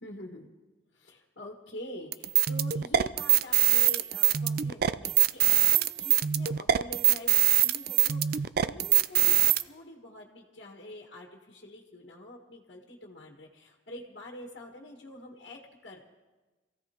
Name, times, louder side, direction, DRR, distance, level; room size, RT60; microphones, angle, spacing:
voice 1, 0.0-0.5 0.9-16.0, left 1 dB, 70° left, 0 dB, 1.6 m, -46 dB
sound 1, 2.1-9.6, right 12 dB, 55° right, 0.4 m, -23 dB
26.5 x 16.0 x 2.9 m, 1.2 s
head